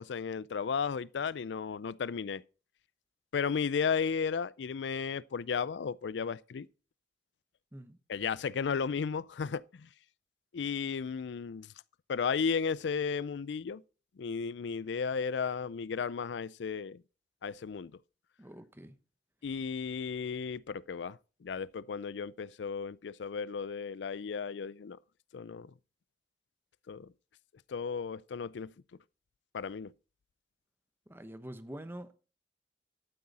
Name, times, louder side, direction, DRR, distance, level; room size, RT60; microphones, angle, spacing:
voice 1, 0.0-2.4 3.3-6.7 8.1-9.9 10.5-11.7 12.1-13.8 14.2-17.0 17.4-17.9 19.4-25.0 25.3-25.7 26.9-27.1 27.7-28.7 29.5-29.9, left 6 dB, 90° left, 0.4 m, -34 dB
voice 2, 18.4-18.9 31.1-32.1, right 1 dB, 15° right, 0.9 m, -45 dB
12.0 x 8.7 x 4.2 m
head